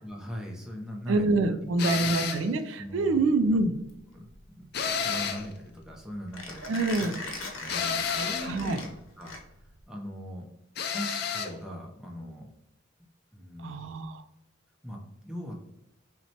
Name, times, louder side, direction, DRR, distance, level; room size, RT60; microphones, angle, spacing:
voice 1, 0.0-1.3 1.8-2.1 2.8-3.6 4.1-4.3 4.6-7.3 7.5-8.9 9.2-9.3 9.9-10.4 10.9-12.5 13.3-13.8 14.8-15.5, equal, 5° right, -1 dB, 0.5 m, -40 dB
voice 2, 1.1-3.8 6.6-7.1 8.4-8.8 13.6-14.2, right 2 dB, 70° right, 8 dB, 0.3 m, -26 dB
sound 1, 1.8-2.5 4.7-5.5 7.7-8.6 10.8-11.5, left 6 dB, 50° left, 0.4 m, -30 dB
Mechanisms, 3.7-9.8, left 3 dB, 85° left, 0.8 m, -41 dB
5.7 x 2.2 x 2.8 m, 0.90 s
head